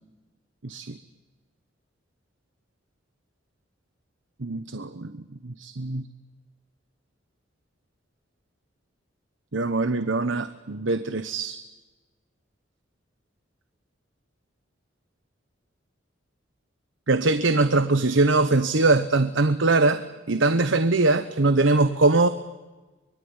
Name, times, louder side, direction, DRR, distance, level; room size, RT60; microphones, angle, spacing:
voice 1, 0.6-1.0 4.4-6.1 9.5-11.6 17.1-20.0 20.3-22.3, right 3 dB, 80° right, 11 dB, 1.1 m, -22 dB
24.5 x 21.0 x 9.7 m, 1.2 s
head